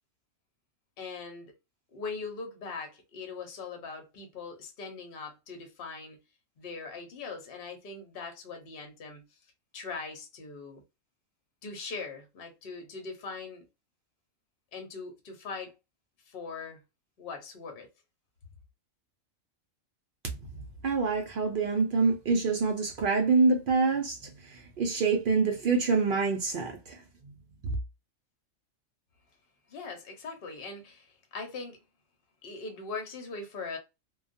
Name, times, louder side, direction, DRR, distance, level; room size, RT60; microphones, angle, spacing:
voice 1, 1.0-1.5 1.9-6.2 6.6-9.2 9.7-10.8 11.6-13.6 14.7-15.7 16.3-16.8 17.2-17.9 29.7-31.8 32.4-33.8, left 4 dB, 50° left, 0.8 m, -41 dB
voice 2, 20.8-24.2 24.5-27.0, right 4 dB, 70° right, 0.5 m, -26 dB
2.3 x 2.2 x 2.5 m
omnidirectional pair, 1.4 m